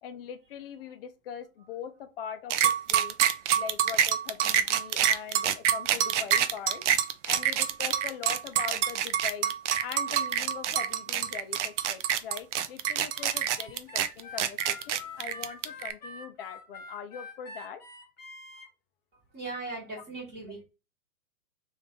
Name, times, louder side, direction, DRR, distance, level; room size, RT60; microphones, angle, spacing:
voice 1, 0.0-3.2 3.6-6.8 7.2-9.5 9.8-17.8, left 8 dB, 40° left, 0.5 m, -41 dB
sound 1, 2.5-15.9, right 10 dB, 50° right, 0.5 m, -26 dB
Harmonica, 13.1-18.7, left 3 dB, 20° left, 1.3 m, -45 dB
voice 2, 19.3-20.6, right 3 dB, 20° right, 1.4 m, -38 dB
3.3 x 2.6 x 3.5 m
hypercardioid pair, 130°, 46 cm